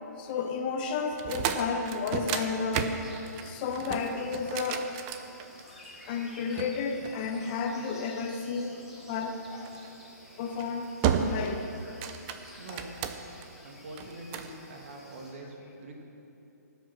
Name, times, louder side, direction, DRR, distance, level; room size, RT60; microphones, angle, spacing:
voice 1, 0.2-3.0 3.4-4.9 5.7-8.8 9.1-9.7 10.4-11.7 12.7-12.9, left 5 dB, 30° left, 4 dB, 1.0 m, -32 dB
sound 1, 1.1-5.8 6.6-7.9 9.6-9.9 10.4-10.7 11.0-11.6 11.9-13.5 14.0-14.5, right 7 dB, 25° right, 0.7 m, -32 dB
sound 2, 1.4-15.3, left 1 dB, 5° right, 1.9 m, -53 dB
voice 2, 12.6-12.9 13.6-16.0, right 2 dB, 50° right, 1 dB, 2.4 m, -44 dB
19.0 x 7.8 x 6.2 m, 2.9 s
hypercardioid pair, 150°, 9 cm